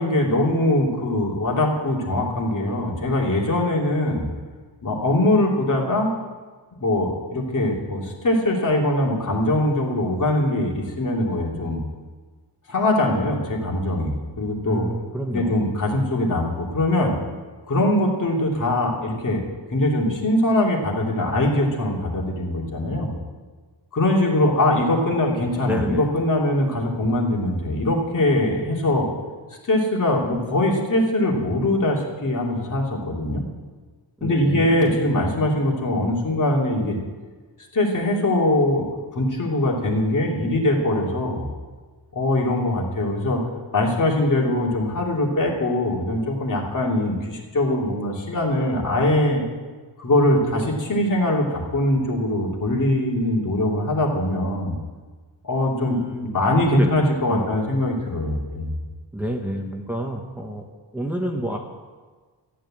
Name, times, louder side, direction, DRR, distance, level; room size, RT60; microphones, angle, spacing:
voice 1, 0.0-4.3 4.8-6.1 6.8-11.8 12.7-14.9 15.3-17.2 17.7-19.4 19.7-23.1 23.9-29.1 29.6-33.4 34.2-37.0 37.7-38.9 39.1-41.5 42.1-43.4 43.7-49.4 50.0-54.8 55.4-58.8, left 1 dB, 45° left, -1 dB, 2.9 m, -22 dB
voice 2, 14.6-15.6 25.6-26.1 34.2-34.8 55.8-56.3 56.8-57.6 59.1-61.6, equal, 5° right, 1 dB, 1.1 m, -29 dB
14.0 x 10.0 x 7.5 m, 1.4 s
wide cardioid pair, 165°, 43 cm